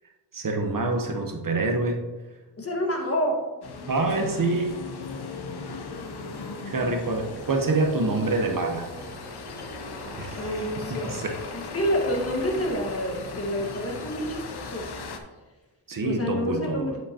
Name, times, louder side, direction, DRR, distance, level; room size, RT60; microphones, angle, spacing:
voice 1, 0.3-2.0 3.9-4.8 6.6-8.9 10.2-11.4 15.9-17.0, right 2 dB, 45° right, 3 dB, 1.1 m, -26 dB
voice 2, 2.6-3.5 7.9-8.2 10.4-11.2 11.5-14.9 16.0-17.0, equal, 30° left, 0 dB, 1.6 m, -28 dB
sound 1, 3.6-15.2, left 4 dB, 60° left, 0.9 m, -38 dB
Boiling, 7.0-12.7, right 1 dB, ahead, 1.8 m, -46 dB
7.8 x 7.6 x 2.9 m, 1.2 s
cardioid pair, 75°, 44 cm